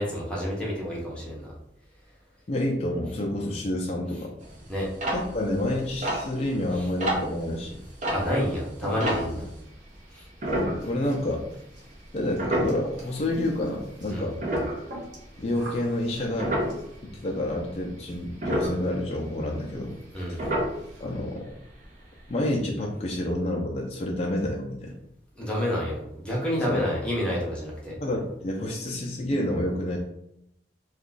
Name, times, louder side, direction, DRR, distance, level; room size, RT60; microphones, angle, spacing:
voice 1, 0.0-1.5 4.7-4.9 6.8-6.9 8.1-9.5 10.1-10.3 14.1-14.3 20.1-20.4 25.3-28.0, equal, 5° left, -6 dB, 0.9 m, -29 dB
voice 2, 2.5-4.3 5.1-7.8 10.5-11.5 12.1-14.4 15.4-16.5 17.0-20.0 20.3-20.5 21.0-21.4 22.3-24.9 26.7-26.8 28.0-30.0, left 1 dB, 35° left, -1 dB, 0.4 m, -29 dB
sound 1, 4.4-9.6 10.4-11.4 11.7-11.9 12.3-13.6 14.1-17.0 17.3-17.8 18.1-20.1 20.4-21.2 21.5-21.6 21.8-22.1 22.4-22.5, right 1 dB, 40° right, 0.8 m, -30 dB
sound 2, 7.4-7.9 8.2-17.1 18.1-18.2 18.5-19.0 19.2-19.3 19.7-19.8 20.1-20.3 20.6-21.1, equal, 70° right, 1.3 m, -43 dB
2.9 x 2.4 x 3.8 m, 0.79 s
head